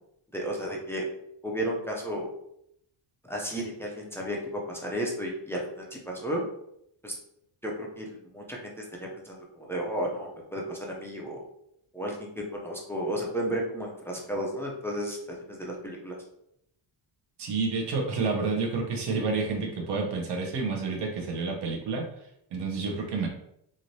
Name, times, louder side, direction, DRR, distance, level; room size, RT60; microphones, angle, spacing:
voice 1, 0.3-1.0 1.4-2.3 3.3-6.4 7.0-7.1 7.6-11.4 11.9-16.2, equal, 5° left, -1 dB, 0.3 m, -33 dB
voice 2, 17.4-22.0 22.5-23.3, right 4 dB, 60° right, 2 dB, 0.8 m, -29 dB
3.1 x 2.5 x 2.6 m, 0.76 s
wide cardioid pair, 155°, 45 cm